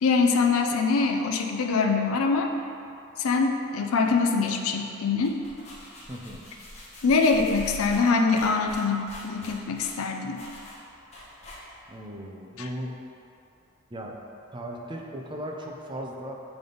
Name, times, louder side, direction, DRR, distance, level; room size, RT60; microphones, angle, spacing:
voice 1, 0.0-2.5 3.2-5.4 7.0-10.4, left 4 dB, 80° left, 3 dB, 0.4 m, -24 dB
sound 1, 5.1-12.0, left 1 dB, 30° left, 0.9 m, -44 dB
voice 2, 6.1-6.5 11.9-13.0 13.9-14.2 14.5-16.4, equal, 20° right, 0 dB, 0.5 m, -37 dB
7.2 x 3.4 x 3.8 m, 2.6 s
head